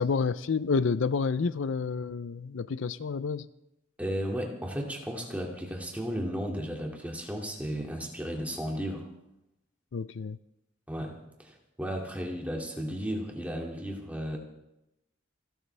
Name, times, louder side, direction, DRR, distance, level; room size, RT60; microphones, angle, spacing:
voice 1, 0.0-3.5 9.9-10.4, left 5 dB, 75° left, 16 dB, 0.5 m, -29 dB
voice 2, 4.0-9.1 10.9-14.4, equal, 10° right, 0 dB, 2.3 m, -34 dB
29.0 x 12.5 x 3.4 m, 0.89 s
head